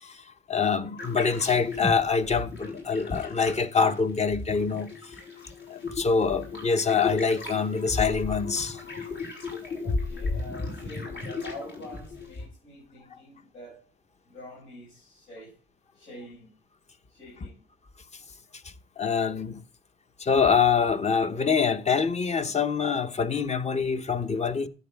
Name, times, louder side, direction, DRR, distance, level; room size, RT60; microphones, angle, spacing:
voice 1, 0.0-5.1 5.7-9.0 19.0-19.6 20.2-24.7, left 5 dB, 35° left, 0.9 m, -25 dB
sound 1, 1.0-12.5, left 3 dB, 70° left, 5.3 m, -35 dB
voice 2, 9.8-13.8 14.3-15.5 15.9-16.5 17.1-17.6, left 1 dB, 90° left, 5.6 m, -45 dB
11.5 x 8.1 x 3.6 m
cardioid pair, 90°, 20 cm